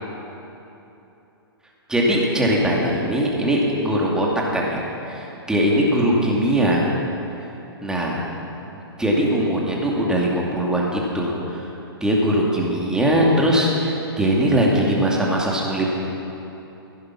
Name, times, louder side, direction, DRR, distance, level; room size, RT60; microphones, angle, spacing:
voice 1, 1.9-4.3 4.5-6.8 7.8-8.2 9.0-11.7 12.0-16.1, equal, 5° right, -3 dB, 2.5 m, -21 dB
15.5 x 10.5 x 5.9 m, 3.0 s
hypercardioid pair, 125°, 13 cm